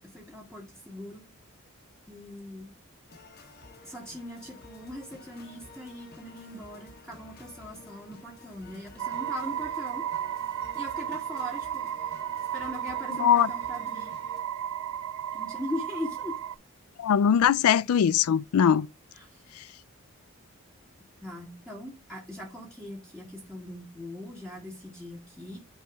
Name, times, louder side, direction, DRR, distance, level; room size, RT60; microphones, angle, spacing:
voice 1, 0.1-1.2 2.1-2.7 3.8-10.1 10.7-11.9 12.5-14.2 15.3-16.4 19.1-19.5 21.2-25.6, left 1 dB, 5° left, 1.5 m, -40 dB
sound 1, 3.1-14.4, left 3 dB, 45° left, 1.4 m, -51 dB
sound 2, 9.0-16.6, right 10 dB, 80° right, 0.4 m, -34 dB
voice 2, 13.2-13.5 17.0-18.9, left 8 dB, 80° left, 0.3 m, -21 dB
9.0 x 3.0 x 3.4 m
head